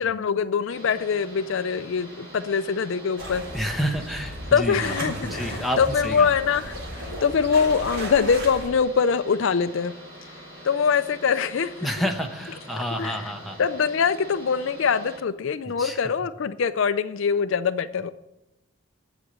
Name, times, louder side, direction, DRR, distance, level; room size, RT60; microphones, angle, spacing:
voice 1, 0.0-3.4 4.5-9.9 10.6-11.9 13.0-13.1 13.6-18.1, left 6 dB, 55° left, 12 dB, 0.4 m, -23 dB
sound 1, 0.7-15.2, equal, 20° right, 4.9 m, -44 dB
sound 2, 3.2-8.7, right 1 dB, 60° right, 3.6 m, -35 dB
voice 2, 3.5-4.9 5.2-6.3 11.8-13.6 15.6-16.0, equal, ahead, 1 dB, 0.9 m, -29 dB
8.1 x 8.0 x 8.6 m, 0.93 s
head